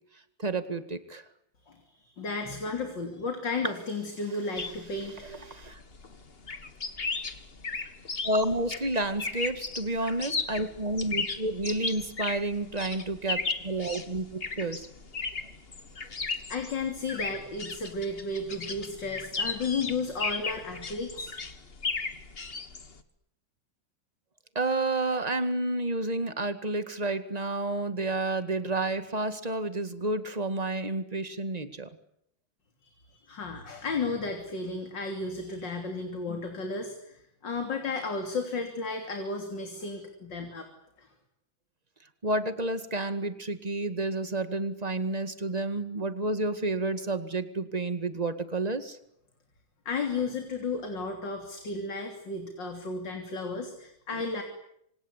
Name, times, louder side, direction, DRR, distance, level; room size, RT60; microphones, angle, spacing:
voice 1, 0.4-1.2 5.2-5.8 8.2-14.9 24.6-31.9 42.2-49.0, right 2 dB, 20° right, 10 dB, 1.9 m, -30 dB
voice 2, 1.6-5.4 16.0-21.4 33.3-40.7 41.0-41.1 49.9-54.4, left 3 dB, 65° left, 4 dB, 3.9 m, -33 dB
sound 1, 4.6-23.0, left 4 dB, 30° left, 1.8 m, -36 dB
27.5 x 26.0 x 8.3 m, 0.74 s
omnidirectional pair, 2.1 m